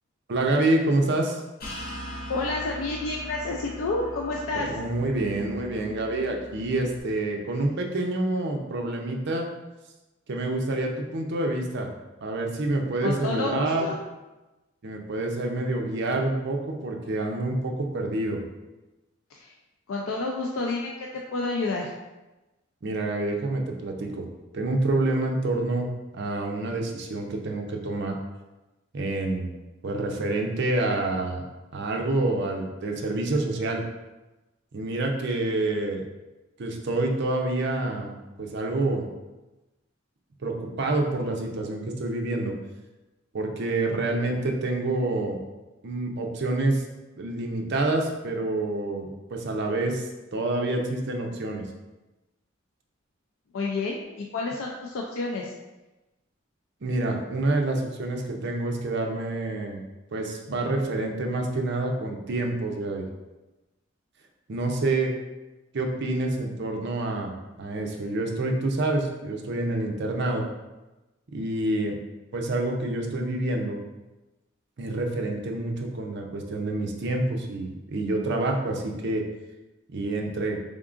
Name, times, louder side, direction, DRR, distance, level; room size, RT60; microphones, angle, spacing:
voice 1, 0.3-1.4 4.5-9.5 10.3-11.9 12.2-13.9 14.8-18.4 22.8-24.3 24.5-25.9 26.1-28.2 28.9-29.5 29.8-31.5 31.7-33.8 34.7-36.1 36.6-39.1 40.4-42.6 43.3-45.4 45.8-46.8 47.2-51.6 56.8-59.8 60.1-63.1 64.5-65.1 65.7-70.5 71.3-72.0 72.3-73.8 74.8-79.2 79.9-80.6, right 2 dB, 60° right, 2 dB, 0.5 m, -27 dB
sound 1, 1.6-7.0, equal, 50° left, 0.8 m, -40 dB
voice 2, 2.3-4.7 13.0-14.0 19.3-19.5 19.9-21.9 53.5-55.5, left 3 dB, 90° left, -1 dB, 0.4 m, -29 dB
3.6 x 3.6 x 2.5 m, 1.1 s
head